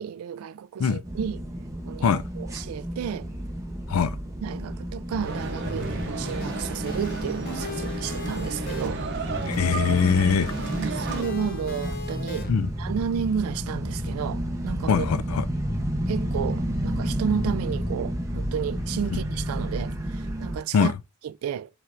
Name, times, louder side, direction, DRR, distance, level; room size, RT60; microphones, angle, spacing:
voice 1, 0.0-1.4 1.8-3.3 4.4-9.0 10.8-12.5 12.8-15.1 16.1-20.9 21.2-21.7, right 7 dB, 90° right, 0.3 m, -32 dB
sound 1, 1.0-20.6, equal, 15° right, 0.8 m, -31 dB
sound 2, 5.1-12.5, left 2 dB, 45° left, 0.7 m, -37 dB
sound 3, 5.2-11.2, right 3 dB, 55° right, 0.8 m, -33 dB
voice 2, 9.5-10.5 12.5-12.7 14.9-15.4 19.1-19.2 20.7-20.9, left 6 dB, 85° left, 0.4 m, -22 dB
5.7 x 3.3 x 2.5 m
head